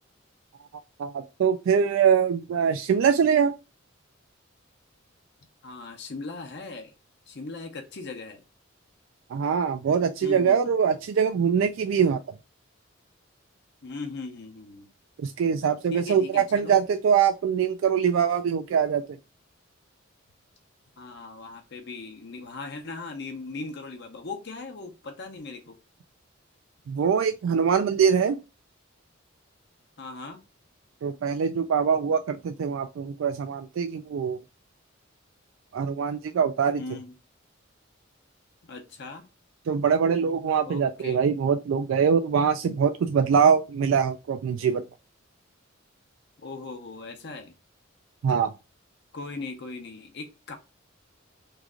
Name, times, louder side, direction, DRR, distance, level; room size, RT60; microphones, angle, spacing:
voice 1, 1.0-3.5 9.3-12.2 15.2-19.0 26.9-28.4 31.0-34.4 35.7-36.8 39.7-44.8 48.2-48.5, right 7 dB, 75° right, 0.3 m, -23 dB
voice 2, 5.6-6.9 7.3-8.4 10.2-10.7 13.8-14.9 15.9-16.7 21.0-25.8 30.0-30.4 36.8-37.1 38.6-39.2 40.6-41.2 46.4-47.5 49.1-50.6, left 3 dB, 55° left, 0.6 m, -39 dB
3.1 x 2.4 x 3.6 m
head